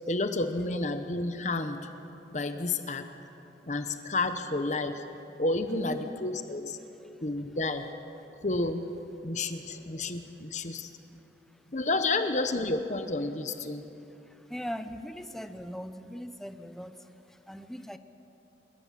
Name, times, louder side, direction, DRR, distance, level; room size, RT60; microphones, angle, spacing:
voice 1, 0.1-1.9 2.3-3.1 3.7-5.0 5.4-6.8 7.2-7.9 8.4-8.9 9.2-10.9 11.7-13.9, left 2 dB, 45° left, 8 dB, 1.1 m, -30 dB
voice 2, 5.7-6.0 7.0-7.2 11.5-11.6 14.2-18.0, equal, ahead, 9 dB, 0.8 m, -41 dB
28.5 x 14.5 x 7.5 m, 3.0 s
head